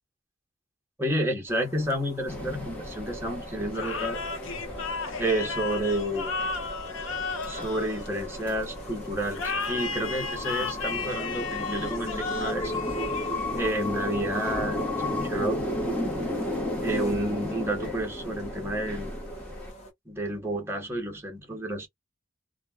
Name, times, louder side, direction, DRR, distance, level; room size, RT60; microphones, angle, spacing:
voice 1, 1.0-4.2 5.2-6.4 7.5-9.4 9.7-12.7 13.6-14.8 15.1-15.6 16.8-19.1 20.1-21.9, right 1 dB, 10° right, 1.0 m, -30 dB
sound 1, 1.5-19.9, right 1 dB, 35° left, 1.0 m, -45 dB
sound 2, 2.3-19.7, left 1 dB, 10° left, 1.1 m, -34 dB
sound 3, 3.7-8.6 9.3-13.7, left 4 dB, 85° left, 0.7 m, -34 dB
3.0 x 2.3 x 2.2 m
head